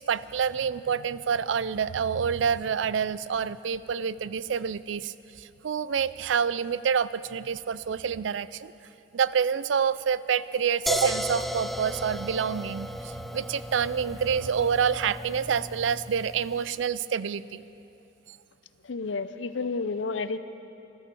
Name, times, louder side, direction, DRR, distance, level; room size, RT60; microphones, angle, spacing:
voice 1, 0.0-8.7 9.1-17.7 18.3-18.4, right 7 dB, 80° right, 17 dB, 0.4 m, -27 dB
sound 1, 10.9-16.7, equal, ahead, 0.4 m, -35 dB
voice 2, 18.9-20.4, left 4 dB, 85° left, 13 dB, 0.6 m, -30 dB
15.5 x 13.5 x 6.9 m, 2.9 s
head